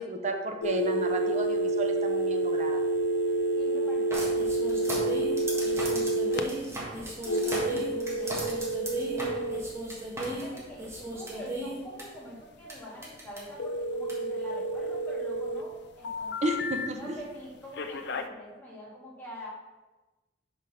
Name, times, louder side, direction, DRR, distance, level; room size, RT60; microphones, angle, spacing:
voice 1, 0.0-2.8 16.4-17.2, right 1 dB, 40° right, 5 dB, 0.8 m, -32 dB
sound 1, 0.6-6.4 7.2-9.6 13.6-15.6 16.0-16.9 17.8-18.2, right 2 dB, 65° left, 0.5 m, -29 dB
voice 2, 3.5-8.5 9.1-9.7 10.2-16.5 17.0-19.5, equal, 10° left, -6 dB, 2.3 m, -46 dB
sound 2, 4.1-12.0 12.7-12.8 13.0-13.4 14.1-14.2, right 1 dB, 15° right, 1.6 m, -35 dB
5.4 x 5.2 x 5.7 m, 1.1 s
head